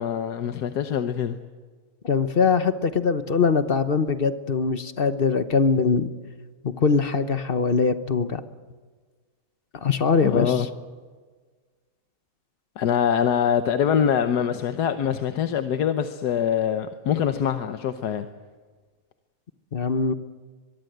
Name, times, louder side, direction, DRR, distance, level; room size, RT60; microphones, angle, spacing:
voice 1, 0.0-1.4 10.2-10.7 12.8-18.3, left 8 dB, 85° left, 8 dB, 1.5 m, -24 dB
voice 2, 2.0-6.1 6.8-8.4 9.8-10.7 19.7-20.1, left 5 dB, 40° left, 11 dB, 1.1 m, -22 dB
23.5 x 22.5 x 8.0 m, 1.5 s
omnidirectional pair, 1.7 m